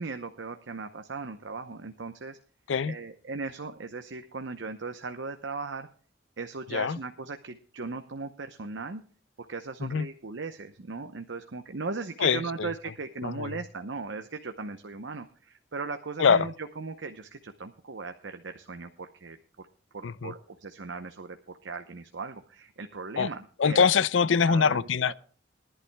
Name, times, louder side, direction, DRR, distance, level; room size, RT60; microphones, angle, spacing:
voice 1, 0.0-2.4 2.8-5.9 6.4-9.0 9.4-19.4 19.9-23.9 24.5-25.1, right 4 dB, 80° right, 0.8 m, -38 dB
voice 2, 12.2-12.7 13.2-13.6 16.2-16.5 20.0-20.3 23.2-23.3 23.6-25.1, left 6 dB, 90° left, 0.5 m, -24 dB
22.0 x 11.5 x 2.3 m
head